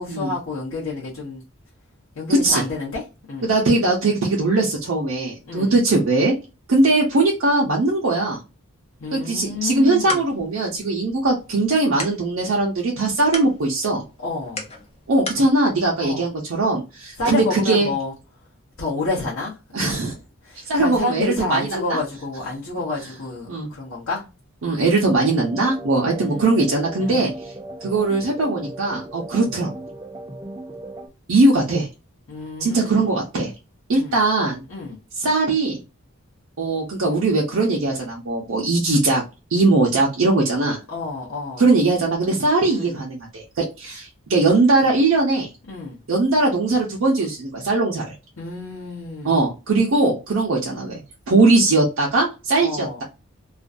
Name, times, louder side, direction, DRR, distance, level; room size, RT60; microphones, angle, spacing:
voice 1, 0.0-1.4 2.1-3.5 5.4-5.8 9.0-10.2 14.2-14.7 16.0-16.2 17.2-18.1 18.8-20.0 20.4-24.3 26.0-26.6 27.0-27.3 32.3-33.1 33.9-34.2 34.7-35.0 40.9-41.6 42.6-43.0 45.7-46.0 48.4-49.4 52.6-53.0, left 3 dB, 70° left, 0.8 m, -29 dB
voice 2, 3.4-6.3 6.7-8.4 9.1-14.0 15.1-17.9 19.7-20.1 20.7-21.6 23.5-23.7 24.6-27.3 27.8-29.7 31.3-31.9 32.6-33.5 33.9-34.6 35.2-35.8 36.6-39.2 39.5-40.8 41.6-45.5 46.1-48.0 49.2-51.0 51.3-53.0, right 2 dB, 70° right, 0.6 m, -20 dB
sound 1, 9.7-15.5, left 3 dB, 30° left, 0.6 m, -37 dB
sound 2, 25.1-31.1, right 2 dB, 20° right, 0.5 m, -36 dB
2.5 x 2.2 x 2.4 m
head